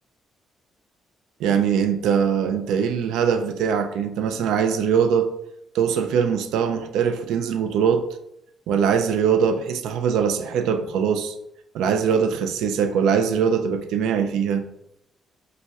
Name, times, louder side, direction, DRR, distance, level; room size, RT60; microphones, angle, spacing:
voice 1, 1.4-5.3 5.7-8.1 8.7-11.3 11.7-14.6, right 7 dB, 90° right, 0.3 m, -22 dB
5.2 x 2.1 x 2.3 m
cardioid pair, 90°, 0 cm